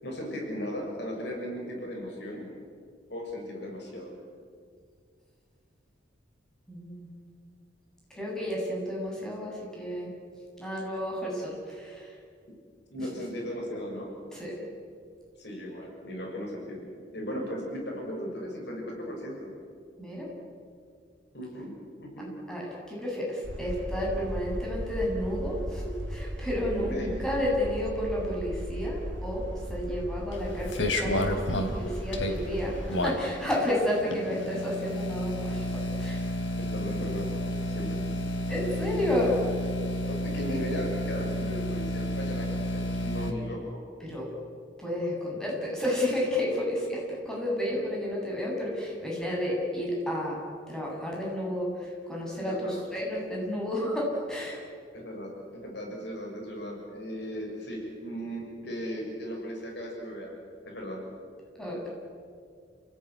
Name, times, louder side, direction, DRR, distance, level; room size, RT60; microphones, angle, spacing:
voice 1, 0.0-2.5 3.1-4.2 12.9-14.1 15.4-19.5 21.3-22.4 26.7-27.2 36.6-38.0 40.1-43.8 52.4-52.9 54.9-60.3 60.6-61.0, equal, 60° left, 0 dB, 6.6 m, -37 dB
voice 2, 6.7-7.1 8.1-10.1 10.6-12.2 13.0-13.1 14.3-14.5 20.0-20.3 22.5-26.9 27.2-29.4 29.7-35.7 36.0-36.2 38.5-39.4 44.0-44.3 44.8-50.4 50.7-54.6 61.6-61.9, left 1 dB, 5° left, -4 dB, 8.0 m, -31 dB
sound 1, 23.4-32.9, right 1 dB, 85° right, 2.3 m, -36 dB
sound 2, 30.3-43.3, left 1 dB, 90° left, 3.3 m, -31 dB
30.0 x 18.0 x 9.8 m, 2.2 s
head